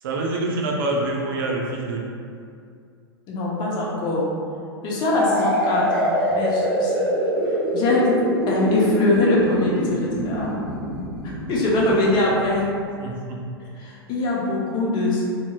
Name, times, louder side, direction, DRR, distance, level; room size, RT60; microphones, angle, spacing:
voice 1, 0.0-2.0 13.0-13.4, right 2 dB, 55° right, -1 dB, 0.5 m, -26 dB
voice 2, 3.3-4.3 4.8-7.0 7.7-8.1 8.5-10.6 11.2-12.7 13.8-15.2, left 2 dB, 35° left, -4 dB, 0.7 m, -22 dB
sound 1, 5.1-12.8, equal, ahead, 1.2 m, -25 dB
3.0 x 2.8 x 2.3 m, 2.4 s
figure-of-eight pair, 100°, 13 cm